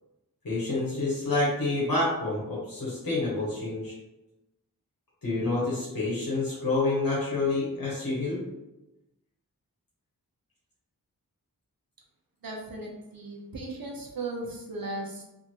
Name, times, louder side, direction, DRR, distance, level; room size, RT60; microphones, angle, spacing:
voice 1, 0.4-3.9 5.2-8.4, left 2 dB, 70° left, -7 dB, 1.0 m, -28 dB
voice 2, 12.4-15.2, right 2 dB, 75° right, -1 dB, 0.8 m, -37 dB
2.7 x 2.5 x 2.8 m, 0.95 s
wide cardioid pair, 55°, 36 cm